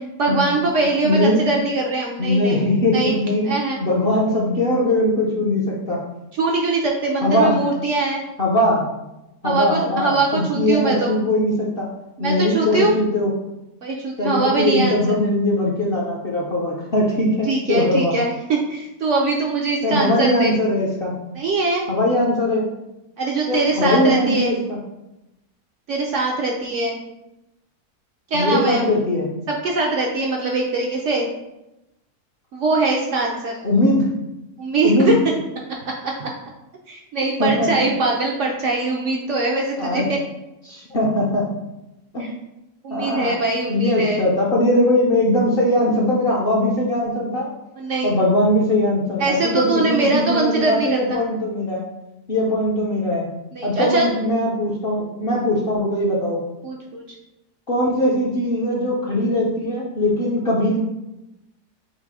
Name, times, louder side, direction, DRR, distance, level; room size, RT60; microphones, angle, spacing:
voice 1, 0.2-2.6 2.9-3.2 3.4-3.8 6.4-8.2 9.4-11.1 12.2-12.9 13.8-15.2 17.5-20.6 21.3-21.9 23.2-24.5 25.9-27.0 28.3-28.8 29.5-31.3 32.5-33.5 34.6-35.1 35.7-36.3 36.9-40.2 42.2-42.3 42.8-44.2 47.8-48.1 49.2-51.2 53.5-54.1 56.6-57.0, right 3 dB, 65° right, -1 dB, 0.8 m, -22 dB
voice 2, 1.0-1.4 2.2-3.5 3.8-6.0 7.2-7.6 8.4-8.9 9.4-11.9 12.2-13.3 14.2-18.1 19.8-21.1 21.9-22.6 23.5-24.8 28.3-29.3 33.6-34.0 34.8-35.1 37.4-37.7 39.8-40.1 40.6-41.5 42.1-42.3 42.9-43.4 43.7-47.5 48.0-51.8 52.3-53.3 53.6-56.4 57.7-60.8, left 1 dB, 50° left, -4 dB, 0.7 m, -20 dB
5.6 x 2.0 x 4.7 m, 0.94 s
omnidirectional pair, 1.7 m